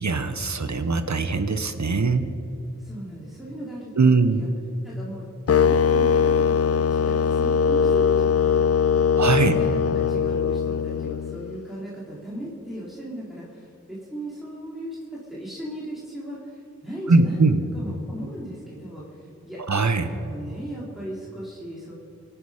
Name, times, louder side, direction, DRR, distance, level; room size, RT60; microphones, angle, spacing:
voice 1, 0.0-2.3 4.0-4.4 9.2-9.6 17.1-17.6 19.7-20.1, right 3 dB, 65° right, 9 dB, 1.1 m, -21 dB
voice 2, 2.8-4.5 4.8-5.3 5.6-17.5 17.7-19.6 20.0-21.9, right 1 dB, ahead, -7 dB, 3.6 m, -37 dB
sound 1, 5.5-11.6, left 6 dB, 50° left, 0.4 m, -21 dB
25.0 x 10.0 x 5.1 m, 2.8 s
wide cardioid pair, 60°, 30 cm